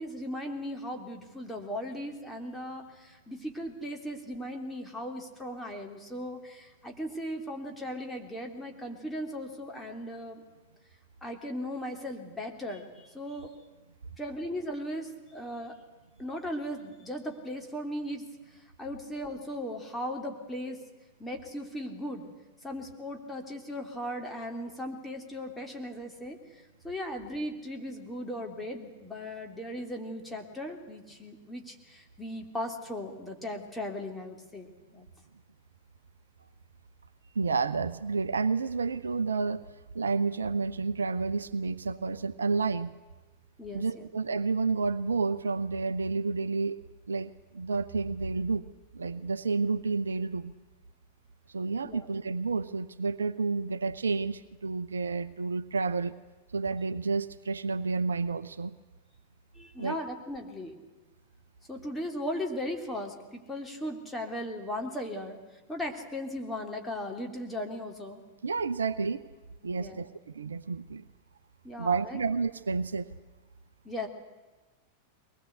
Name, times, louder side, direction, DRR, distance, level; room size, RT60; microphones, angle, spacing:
voice 1, 0.0-10.4 11.2-13.5 14.2-15.8 16.2-18.2 18.8-20.8 21.2-22.3 22.6-26.4 26.8-35.1 43.6-44.1 51.8-52.1 59.5-60.7 61.7-65.4 65.7-68.2 69.7-70.0 71.6-72.2 73.8-74.1, equal, 5° left, 1 dB, 3.4 m, -37 dB
voice 2, 37.3-39.6 39.9-42.9 43.7-46.8 47.1-50.5 51.5-56.1 56.5-58.7 59.8-60.0 68.4-69.2 69.6-71.0 71.8-73.1, right 4 dB, 70° right, 15 dB, 0.7 m, -30 dB
23.0 x 20.0 x 8.2 m, 1.2 s
figure-of-eight pair, 90°, 0 cm